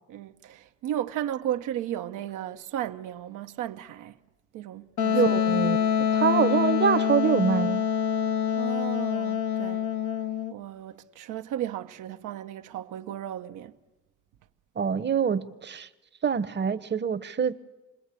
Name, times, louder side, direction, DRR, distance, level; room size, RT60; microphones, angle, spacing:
voice 1, 0.1-4.2 4.5-5.4 8.6-9.8 10.5-13.7, right 11 dB, 90° right, 0.8 m, -34 dB
Wind instrument woodwind instrument, 5.0-10.5, left 8 dB, 75° left, 0.8 m, -25 dB
voice 2, 5.1-5.9 6.1-7.8 14.8-15.9 16.2-17.5, right 7 dB, 35° right, 0.8 m, -25 dB
28.0 x 20.5 x 8.3 m
cardioid pair, 90°, 30 cm